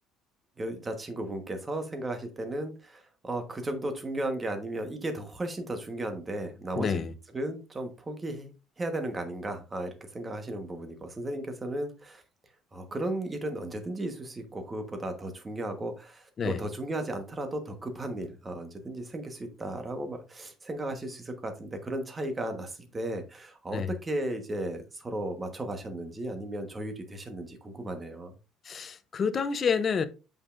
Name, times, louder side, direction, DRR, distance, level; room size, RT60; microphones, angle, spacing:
voice 1, 0.6-7.0 7.3-8.5 8.8-12.2 12.7-28.3, right 1 dB, 15° right, 1.2 m, -35 dB
voice 2, 6.8-7.1 16.4-16.6 23.7-23.9 28.7-30.1, left 6 dB, 25° left, 0.7 m, -28 dB
8.6 x 5.5 x 2.5 m
cardioid pair, 170°, 0 cm